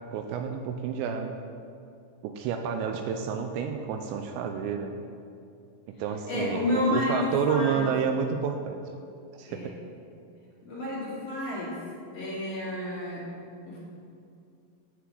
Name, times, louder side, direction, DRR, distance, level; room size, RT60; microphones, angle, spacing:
voice 1, 0.1-1.3 2.2-5.0 5.9-8.8 9.3-9.7, right 6 dB, 85° right, 5 dB, 2.5 m, -30 dB
voice 2, 6.3-7.9 9.5-9.7 10.6-11.8 12.1-13.3 13.7-13.8, left 1 dB, 45° left, -7 dB, 2.2 m, -30 dB
9.8 x 5.9 x 7.5 m, 2.5 s
omnidirectional pair, 5.7 m